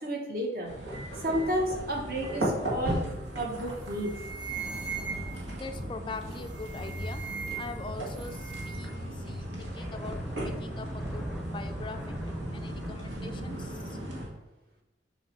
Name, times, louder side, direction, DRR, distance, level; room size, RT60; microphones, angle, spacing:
voice 1, 0.0-0.7 1.2-3.0 3.3-4.1, equal, 55° right, 0 dB, 1.5 m, -31 dB
sound 1, 0.7-14.3, right 1 dB, 85° right, 2.0 m, -36 dB
sound 2, 3.4-3.6 3.9-5.6 6.4-8.9, right 6 dB, 25° right, 1.1 m, -39 dB
voice 2, 5.5-7.2 7.6-10.2 10.4-12.2 12.5-13.8, left 3 dB, 25° left, 7 dB, 0.4 m, -42 dB
sound 3, 9.5-12.9, equal, 5° right, 0.7 m, -42 dB
7.7 x 3.1 x 5.9 m, 0.97 s
head